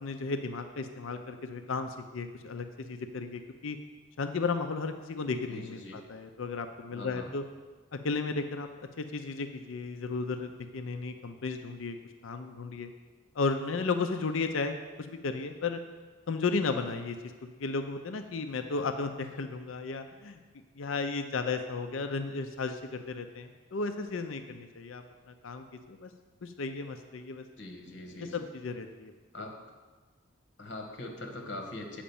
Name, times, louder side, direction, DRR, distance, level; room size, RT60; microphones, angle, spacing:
voice 1, 0.0-3.8 4.2-7.4 7.9-8.7 9.0-12.0 12.2-12.9 13.4-15.8 16.3-17.2 17.6-20.4 20.8-26.1 26.4-27.4 28.3-29.1, left 4 dB, 80° left, 7 dB, 0.6 m, -34 dB
voice 2, 5.5-6.0 6.9-7.3 27.6-28.4 29.3-29.5 30.6-32.0, left 2 dB, 60° left, 3 dB, 1.4 m, -42 dB
8.8 x 5.1 x 7.0 m, 1.4 s
head